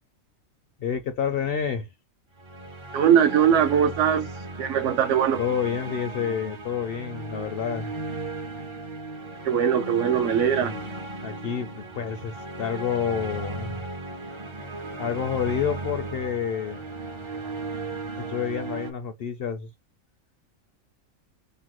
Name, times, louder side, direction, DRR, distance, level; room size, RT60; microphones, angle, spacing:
voice 1, 0.8-1.9 5.4-7.9 10.6-10.9 11.2-13.8 15.0-16.8 18.2-19.7, left 7 dB, 65° left, 0.6 m, -29 dB
sound 1, 2.4-18.9, right 2 dB, 40° right, 0.4 m, -36 dB
voice 2, 2.9-4.3 4.6-5.4 9.4-10.7, right 8 dB, 70° right, 0.9 m, -21 dB
3.1 x 2.1 x 2.9 m
omnidirectional pair, 1.4 m